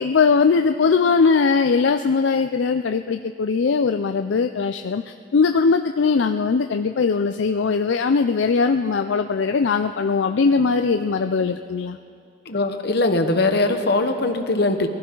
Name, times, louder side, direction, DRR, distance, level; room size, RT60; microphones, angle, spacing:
voice 1, 0.0-5.0 5.3-12.0, left 5 dB, 80° left, 7 dB, 0.4 m, -20 dB
voice 2, 12.5-14.9, left 2 dB, 60° left, 6 dB, 1.2 m, -21 dB
22.5 x 16.5 x 3.9 m, 2.5 s
head